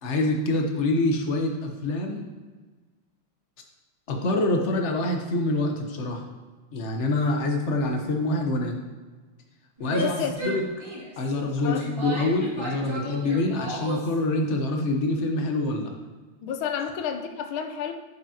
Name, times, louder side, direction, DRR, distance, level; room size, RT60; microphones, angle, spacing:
voice 1, 0.0-2.3 4.1-6.2 6.7-8.8 9.8-10.2 10.4-10.6 11.2-15.9, left 2 dB, 45° left, 2 dB, 1.0 m, -26 dB
Female speech woman speaking / Yell, 9.8-14.1, right 1 dB, 15° right, 2.0 m, -35 dB
voice 2, 9.9-10.6 11.6-11.9 16.4-17.9, left 7 dB, 75° left, 6 dB, 1.5 m, -31 dB
10.0 x 7.2 x 2.9 m, 1.3 s
omnidirectional pair, 2.3 m